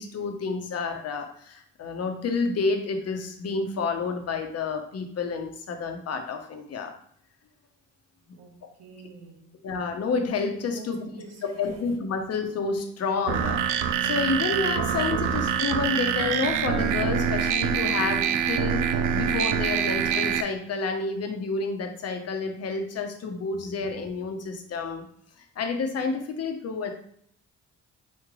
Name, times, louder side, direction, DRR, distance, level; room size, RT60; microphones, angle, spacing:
voice 1, 0.0-6.9 9.6-25.1 25.6-26.9, left 4 dB, 55° left, 0.9 m, -29 dB
voice 2, 8.4-9.5 10.7-11.8, right 4 dB, 60° right, 1.1 m, -47 dB
sound 1, 13.3-20.4, right 8 dB, 80° right, 0.5 m, -25 dB
4.3 x 3.3 x 3.7 m
cardioid pair, 90°, 30 cm